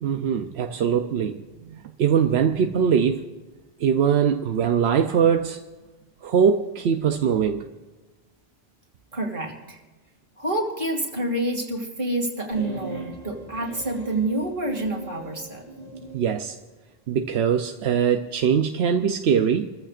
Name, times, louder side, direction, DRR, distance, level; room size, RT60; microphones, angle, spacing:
voice 1, 0.0-3.3 3.8-5.6 6.2-7.7 16.1-16.6 17.1-19.7, right 7 dB, 85° right, 0.9 m, -22 dB
voice 2, 9.1-9.8 10.4-15.6, right 1 dB, 55° right, 2.7 m, -28 dB
sound 1, 12.5-16.3, right 1 dB, 40° left, 4.8 m, -39 dB
29.0 x 14.5 x 2.5 m
omnidirectional pair, 1.1 m